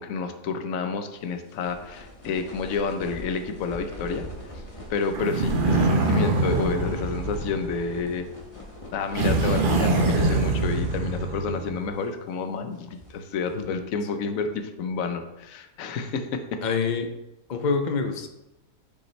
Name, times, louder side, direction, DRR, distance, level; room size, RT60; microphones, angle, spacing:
voice 1, 0.0-4.3 4.9-8.3 8.9-16.6, left 5 dB, 60° left, 7 dB, 1.1 m, -30 dB
sound 1, 1.2-10.7 11.0-11.1 11.7-12.2 12.7-13.8, left 1 dB, 20° left, 1.2 m, -43 dB
sound 2, 5.1-8.2 9.1-11.9, right 2 dB, 45° right, 0.7 m, -24 dB
voice 2, 16.6-17.1 17.5-18.3, left 5 dB, 80° left, 6 dB, 0.4 m, -26 dB
10.5 x 5.4 x 3.3 m, 0.97 s
omnidirectional pair, 1.7 m